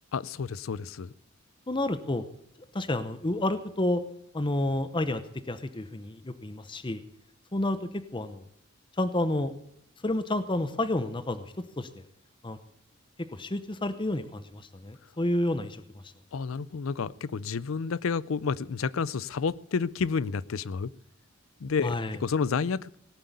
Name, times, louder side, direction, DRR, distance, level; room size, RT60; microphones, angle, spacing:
voice 1, 0.1-1.1 16.3-20.9 21.6-22.9, left 5 dB, 75° left, 19 dB, 0.5 m, -30 dB
voice 2, 1.7-2.2 2.7-4.0 4.3-5.2 5.5-7.0 7.5-8.4 9.0-9.5 10.0-11.9 12.4-12.6 13.3-15.8 21.8-22.2, left 1 dB, 25° left, 11 dB, 0.8 m, -30 dB
18.0 x 7.7 x 8.3 m, 0.73 s
head